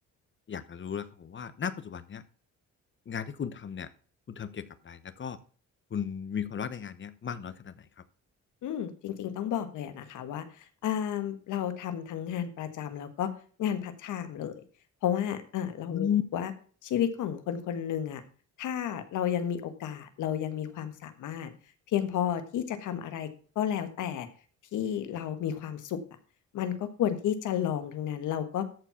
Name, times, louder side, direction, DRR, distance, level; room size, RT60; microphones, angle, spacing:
voice 1, 0.5-2.2 3.1-3.9 4.3-5.4 5.9-7.9 15.9-16.2, left 8 dB, 40° left, 14 dB, 0.9 m, -34 dB
voice 2, 8.6-10.4 10.8-13.3 13.6-14.5 15.0-16.5 16.8-18.2 18.6-21.5 21.9-23.3 23.5-24.3 24.7-26.0 26.5-28.7, left 9 dB, 80° left, 10 dB, 1.4 m, -32 dB
13.5 x 4.6 x 5.7 m, 0.41 s
cardioid pair, 90°, 30 cm